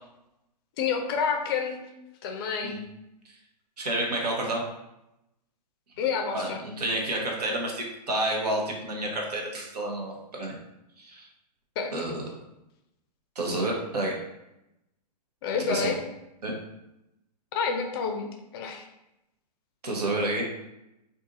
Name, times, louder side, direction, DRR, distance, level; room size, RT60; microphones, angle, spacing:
voice 1, 0.8-1.8 2.2-2.8 6.0-6.6 11.8-11.9 15.4-16.0 17.5-18.3 18.5-18.8, left 6 dB, 35° left, 3 dB, 0.5 m, -28 dB
voice 2, 3.8-4.6 6.3-10.6 11.0-11.3 11.9-12.3 13.4-14.2 15.7-15.9 16.4-16.5 19.8-20.4, right 1 dB, 70° right, 0 dB, 0.9 m, -29 dB
2.6 x 2.5 x 3.7 m, 0.89 s
figure-of-eight pair, 120°, 21 cm